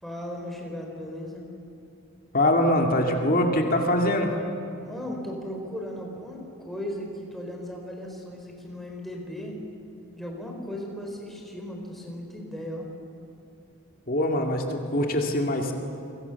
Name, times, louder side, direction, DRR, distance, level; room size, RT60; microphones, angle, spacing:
voice 1, 0.0-1.4 4.8-9.5 10.1-12.9, left 1 dB, ahead, 0 dB, 4.4 m, -36 dB
voice 2, 2.3-4.3 14.1-15.7, left 1 dB, 40° left, 2 dB, 2.4 m, -23 dB
28.5 x 24.0 x 7.2 m, 2.7 s
head